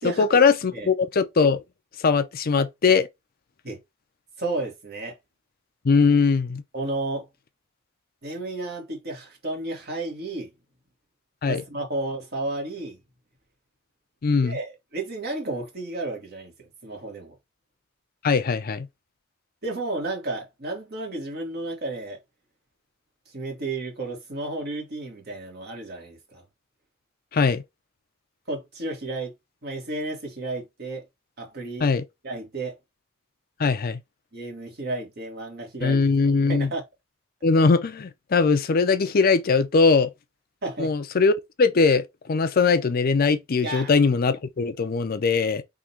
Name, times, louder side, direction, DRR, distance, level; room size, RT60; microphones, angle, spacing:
voice 1, 0.0-1.6 2.0-3.1 5.8-6.6 11.4-11.6 14.2-14.6 18.2-18.9 27.3-27.6 31.8-32.0 33.6-34.0 35.8-36.7 37.4-40.1 40.8-45.6, left 4 dB, 45° left, 0.5 m, -21 dB
voice 2, 4.4-5.2 6.7-7.3 8.2-10.5 11.4-13.0 14.4-17.3 19.6-22.2 23.3-26.4 28.5-29.3 29.6-31.1 31.4-31.9 32.2-32.7 34.3-36.0 36.5-36.8 40.6-40.9 43.6-43.9, right 2 dB, 55° right, 1.9 m, -32 dB
3.7 x 2.9 x 4.3 m
head